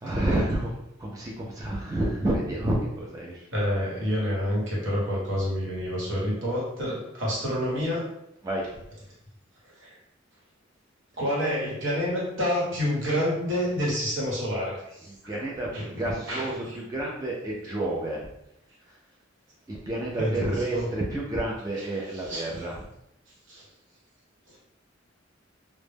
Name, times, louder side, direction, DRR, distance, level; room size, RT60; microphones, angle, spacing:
voice 1, 0.0-3.5 8.4-8.7 15.3-15.7 16.0-18.2 19.7-22.8, right 1 dB, 20° right, -4 dB, 0.3 m, -29 dB
voice 2, 3.5-8.1 9.8-9.9 11.2-15.3 15.7-16.7 20.2-20.9 22.1-22.6 23.5-23.7 24.5-24.6, equal, 70° right, -5 dB, 1.0 m, -28 dB
2.1 x 2.0 x 3.2 m, 0.80 s
head